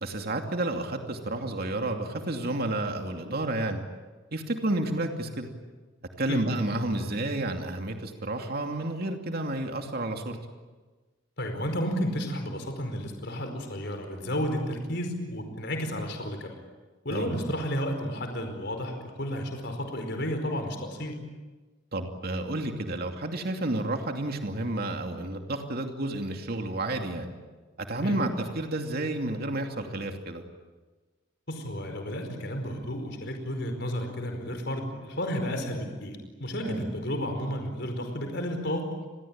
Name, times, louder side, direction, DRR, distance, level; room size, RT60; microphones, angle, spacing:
voice 1, 0.0-3.8 4.3-5.5 6.2-10.4 17.1-17.4 21.9-27.3 27.8-30.4 36.6-36.9, right 2 dB, 55° right, 4 dB, 2.7 m, -31 dB
voice 2, 11.4-16.6 17.0-21.2 28.0-28.2 31.5-38.9, equal, 60° left, 5 dB, 4.9 m, -32 dB
29.0 x 21.5 x 8.8 m, 1.3 s
head